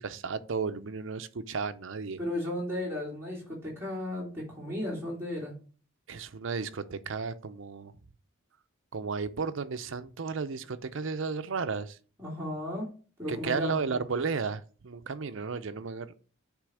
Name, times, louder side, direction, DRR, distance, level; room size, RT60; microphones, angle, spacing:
voice 1, 0.0-2.2 6.1-7.9 8.9-12.0 13.3-16.2, right 5 dB, 65° right, 0.6 m, -33 dB
voice 2, 2.2-5.5 12.2-12.9 13.2-13.8, left 1 dB, 10° right, 3.5 m, -34 dB
8.2 x 3.4 x 6.4 m
head